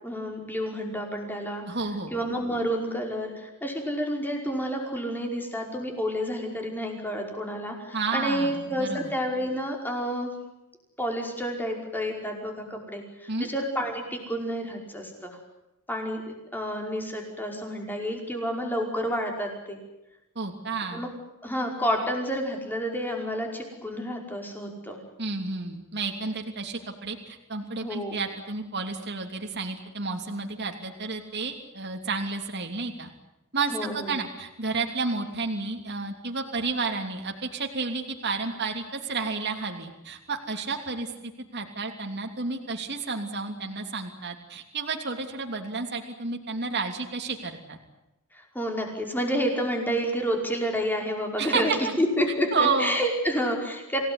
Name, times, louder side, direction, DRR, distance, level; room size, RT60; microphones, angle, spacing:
voice 1, 0.0-1.6 2.1-10.3 11.0-15.4 15.9-16.2 16.5-19.8 20.9-21.1 21.4-25.0 27.8-28.2 33.7-34.2 48.3-51.7 52.0-54.0, equal, 10° left, 2 dB, 5.3 m, -29 dB
voice 2, 1.7-2.1 7.9-9.1 13.3-13.5 20.3-21.0 25.2-33.1 33.5-47.8 51.4-51.8 52.5-53.0, right 4 dB, 50° right, 3 dB, 3.1 m, -31 dB
27.5 x 18.0 x 9.8 m, 0.94 s
head